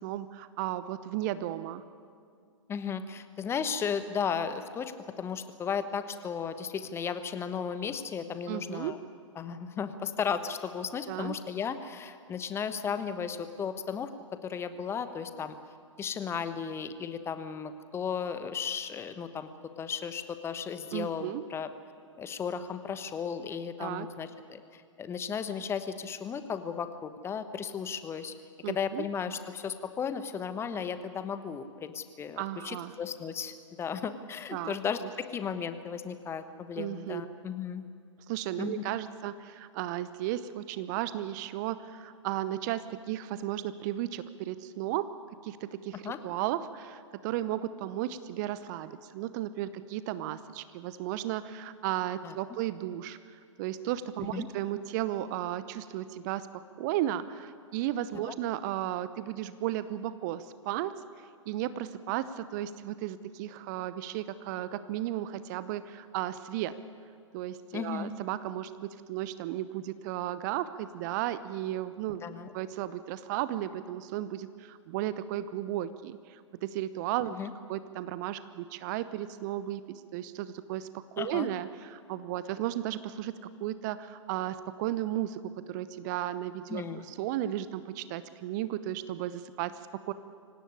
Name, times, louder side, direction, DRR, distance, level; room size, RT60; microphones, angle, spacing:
voice 1, 0.0-1.8 8.5-8.9 11.1-11.3 20.9-21.4 23.8-24.1 28.6-29.0 32.4-32.9 34.5-34.8 36.8-37.2 38.3-45.1 45.4-53.2 53.6-56.5 56.8-60.9 61.5-66.8 67.3-72.2 72.5-77.4 77.7-83.3 83.6-85.4 85.7-90.1, right 13 dB, 35° right, 14 dB, 0.8 m, -34 dB
voice 2, 2.7-9.0 9.4-14.1 14.4-15.6 16.0-19.5 19.8-21.7 22.2-28.3 28.7-35.0 35.3-37.8 38.6-38.8 46.0-46.2 52.2-52.3 54.3-54.5 58.2-58.3 67.7-68.1 72.2-72.5 77.4-77.5 81.2-81.5 86.7-87.1, left 7 dB, 15° left, 11 dB, 1.2 m, -35 dB
25.0 x 17.5 x 9.9 m, 2.3 s
figure-of-eight pair, 110°, 16 cm